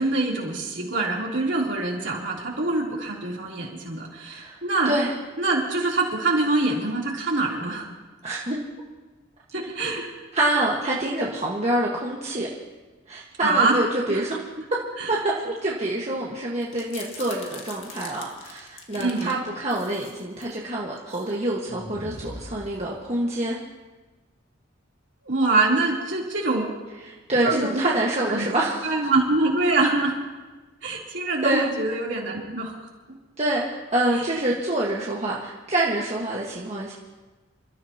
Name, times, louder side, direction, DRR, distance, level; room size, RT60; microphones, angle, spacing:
voice 1, 0.0-4.9 5.4-7.9 9.5-10.1 13.4-13.8 14.1-14.2 15.0-15.1 19.0-19.3 25.2-26.8 27.4-27.8 28.3-28.4 28.8-30.2 30.8-32.7 34.1-34.2, right 2 dB, 60° right, -3 dB, 3.4 m, -24 dB
voice 2, 8.2-8.6 10.3-12.5 13.1-14.4 15.1-15.2 15.4-23.6 27.0-28.9 31.4-31.6 33.4-36.9, right 1 dB, 35° right, -4 dB, 1.6 m, -26 dB
sound 1, 16.6-19.3 19.7-20.5 21.0-21.3 21.6-23.3, left 3 dB, 65° left, 2.0 m, -42 dB
28.0 x 14.0 x 3.0 m, 1.2 s
head